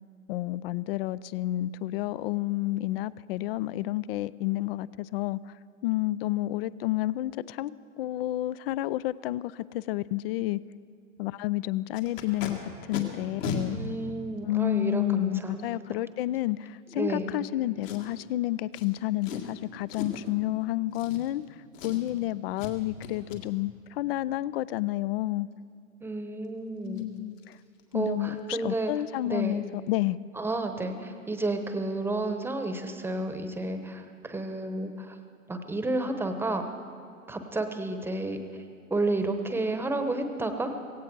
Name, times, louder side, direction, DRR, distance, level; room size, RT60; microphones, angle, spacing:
voice 1, 0.3-5.6 5.8-7.7 8.0-10.6 11.2-12.6 12.9-13.8 14.4-21.4 21.8-25.5 26.8-27.6 27.9-30.2, left 16 dB, 45° left, 19 dB, 0.4 m, -30 dB
Packing tape duct tape, 11.9-12.5 12.9-13.0 13.4-13.6 14.4-14.5 17.8-18.3 18.7-18.9 19.2-19.5 19.9-20.3 20.9-21.5 21.7-22.2 22.6-22.7 23.0-23.4 26.4-26.5 26.9-27.0 27.4-27.5 27.8-28.1 28.3-28.4, left 6 dB, 70° left, 2.2 m, -36 dB
voice 2, 13.7-15.8 16.9-17.3 26.0-27.1 27.9-28.9 29.2-29.6 30.4-35.2 35.5-36.7 37.3-38.4 38.9-40.7, right 2 dB, 5° right, 7 dB, 0.9 m, -31 dB
17.0 x 16.5 x 4.6 m, 2.5 s
hypercardioid pair, 115°, 41 cm